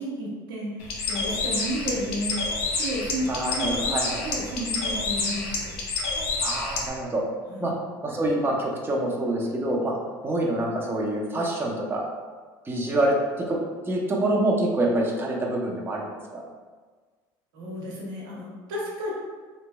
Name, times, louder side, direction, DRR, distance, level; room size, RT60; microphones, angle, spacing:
voice 1, 0.0-2.4 2.8-3.3 3.6-3.9 4.2-5.7 7.5-7.7 17.5-19.1, equal, 85° right, -4 dB, 0.9 m, -32 dB
Bird, 0.8-6.9, left 3 dB, 70° left, 0.7 m, -29 dB
voice 2, 3.3-4.2 6.4-7.2 7.6-7.7 8.0-9.9 10.2-12.0 12.6-16.4, right 1 dB, 20° right, -2 dB, 0.6 m, -26 dB
3.2 x 3.0 x 2.2 m, 1.4 s
hypercardioid pair, 80°, 11 cm